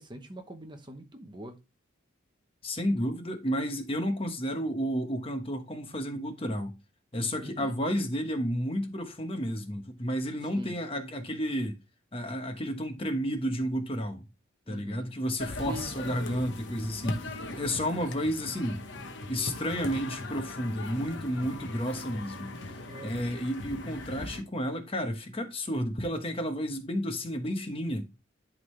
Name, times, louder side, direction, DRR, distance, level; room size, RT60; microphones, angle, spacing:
voice 1, 0.0-1.6 7.4-7.8 10.5-10.8 14.7-15.1 15.7-16.2 22.9-23.2, right 1 dB, 20° right, 0.9 m, -43 dB
voice 2, 2.6-6.7 7.1-11.8 12.1-14.3 14.7-18.8 19.3-22.5 23.0-28.1, equal, 30° left, 1.1 m, -31 dB
sound 1, 15.4-24.4, left 2 dB, 60° left, 1.0 m, -39 dB
11.5 x 3.8 x 3.2 m
head